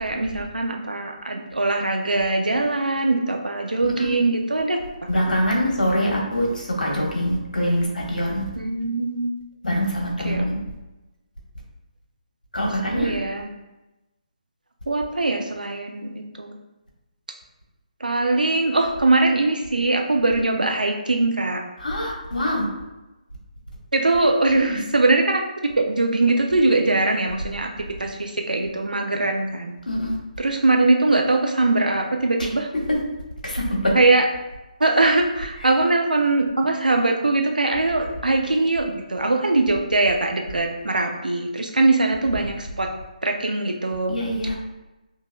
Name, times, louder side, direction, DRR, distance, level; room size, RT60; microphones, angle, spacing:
voice 1, 0.0-4.8 8.6-9.3 10.2-10.5 12.9-13.5 14.9-16.6 18.0-21.6 23.9-25.4 25.8-27.7 28.0-29.8 30.4-32.7 33.9-34.3 34.8-42.9 43.2-44.2, right 2 dB, 90° right, 3 dB, 0.5 m, -21 dB
voice 2, 5.1-8.4 9.6-10.6 12.5-13.1 21.8-22.6 24.7-24.8 29.9-30.1 33.4-33.9 44.1-44.5, equal, 85° left, -1 dB, 1.2 m, -24 dB
4.5 x 3.0 x 2.2 m, 1.0 s
figure-of-eight pair, 150°, 4 cm